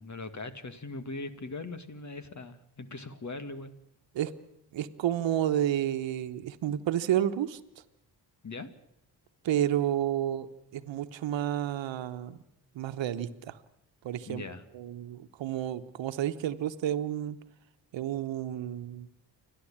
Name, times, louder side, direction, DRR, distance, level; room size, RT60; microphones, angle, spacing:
voice 1, 0.0-3.8 8.4-8.7 14.3-14.6, left 3 dB, 40° left, 10 dB, 2.3 m, -40 dB
voice 2, 4.7-7.8 9.4-12.4 12.7-13.6 14.0-14.4 14.7-17.4 17.9-19.1, right 11 dB, 90° right, 10 dB, 1.2 m, -31 dB
29.5 x 11.0 x 8.8 m, 0.79 s
cardioid pair, 65°, 44 cm